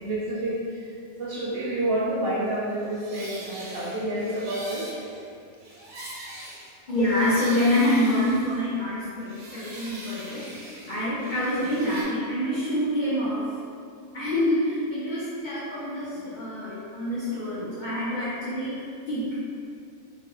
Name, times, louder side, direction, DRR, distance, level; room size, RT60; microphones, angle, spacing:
voice 1, 0.0-4.9, right 1 dB, 65° right, -6 dB, 0.6 m, -29 dB
sound 1, 2.7-8.9 9.2-12.0, right 1 dB, 90° right, 1.2 m, -42 dB
voice 2, 6.9-10.4 10.9-13.4 14.1-19.5, left 1 dB, 50° left, -10 dB, 0.6 m, -26 dB
3.0 x 2.5 x 3.0 m, 2.4 s
omnidirectional pair, 1.5 m